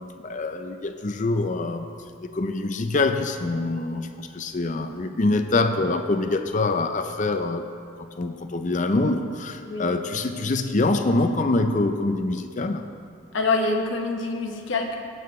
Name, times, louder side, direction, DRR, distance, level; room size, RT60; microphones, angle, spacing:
voice 1, 0.0-1.9 2.2-7.6 8.2-12.8, left 2 dB, 35° left, 7 dB, 0.5 m, -25 dB
voice 2, 9.6-10.0 13.3-15.0, left 3 dB, 60° left, 2 dB, 1.0 m, -25 dB
17.5 x 7.7 x 3.2 m, 2.4 s
head